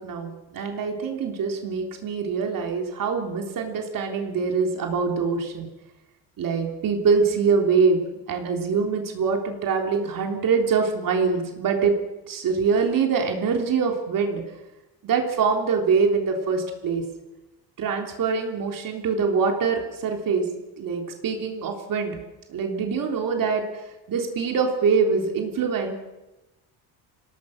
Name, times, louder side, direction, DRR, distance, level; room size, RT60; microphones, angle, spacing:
voice 1, 0.0-5.7 6.4-8.0 8.3-11.9 12.3-14.4 15.0-17.0 17.8-20.5 20.8-22.2 22.5-23.8 24.1-25.9, right 5 dB, 55° right, 2 dB, 3.6 m, -24 dB
27.0 x 17.5 x 6.6 m, 1.0 s
cardioid pair, 155°, 41 cm